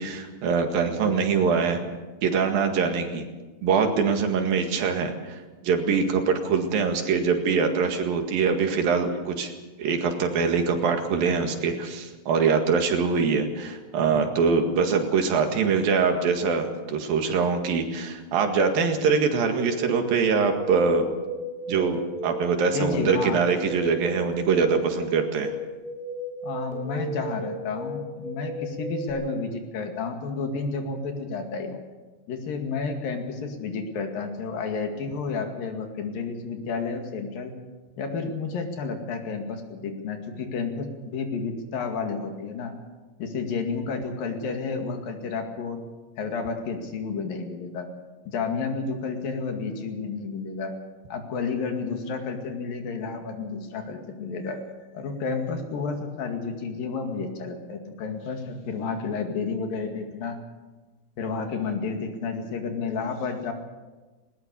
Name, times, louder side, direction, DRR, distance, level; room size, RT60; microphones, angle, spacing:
voice 1, 0.0-1.8 2.2-3.3 3.6-9.5 9.8-21.1 21.7-25.5, right 5 dB, 80° right, 5 dB, 3.7 m, -23 dB
sound 1, 19.6-29.1, right 1 dB, 10° right, 5.4 m, -35 dB
voice 2, 22.7-23.4 26.4-31.8 32.3-37.5 38.0-42.7 43.2-45.8 46.2-47.9 48.3-50.7 51.1-54.6 54.9-60.4 61.2-63.5, left 4 dB, 75° left, 4 dB, 3.9 m, -31 dB
19.5 x 19.5 x 6.9 m, 1.2 s
omnidirectional pair, 4.1 m